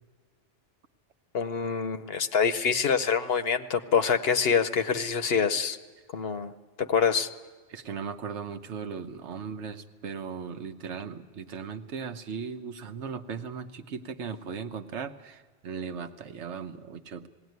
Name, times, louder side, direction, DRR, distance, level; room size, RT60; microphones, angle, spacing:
voice 1, 1.3-5.8 6.1-6.5 6.8-7.3, left 6 dB, 60° left, 9 dB, 1.0 m, -25 dB
voice 2, 7.7-17.3, right 6 dB, 80° right, 8 dB, 1.2 m, -37 dB
19.5 x 17.0 x 9.4 m, 1.3 s
omnidirectional pair, 1.2 m